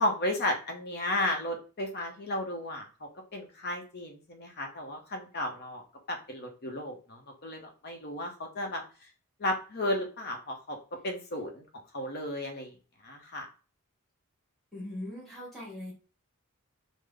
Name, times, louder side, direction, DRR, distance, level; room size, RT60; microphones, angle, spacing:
voice 1, 0.0-5.8 6.1-8.8 9.4-10.8 11.0-11.6 11.9-12.7 13.0-13.5, left 1 dB, 50° left, 3 dB, 0.8 m, -33 dB
voice 2, 14.7-15.9, left 1 dB, ahead, -6 dB, 1.9 m, -40 dB
3.8 x 2.1 x 3.3 m, 0.36 s
head